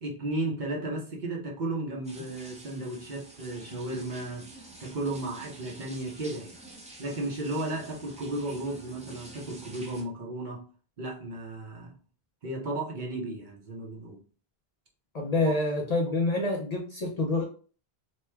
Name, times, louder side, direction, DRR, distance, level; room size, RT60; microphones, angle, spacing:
voice 1, 0.0-4.5 4.8-6.6 7.0-10.7 11.0-11.9 12.4-14.2, right 2 dB, 50° right, 0.9 m, -34 dB
sound 1, 2.0-10.0, right 2 dB, 10° right, 0.3 m, -48 dB
voice 2, 15.1-17.4, left 2 dB, 50° left, 0.5 m, -27 dB
3.1 x 2.2 x 3.2 m
omnidirectional pair, 1.0 m